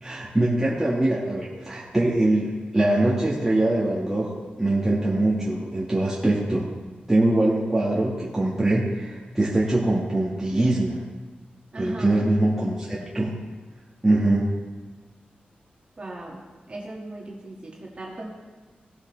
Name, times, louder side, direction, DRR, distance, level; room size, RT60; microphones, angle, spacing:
voice 1, 0.0-4.3 4.6-6.7 7.1-11.0 11.8-13.4 14.0-14.5, right 1 dB, 10° right, -6 dB, 1.5 m, -23 dB
voice 2, 11.7-12.2 16.0-16.4 16.7-18.3, right 2 dB, 35° right, -3 dB, 1.8 m, -37 dB
17.0 x 7.7 x 3.2 m, 1.3 s
wide cardioid pair, 145°, 3 cm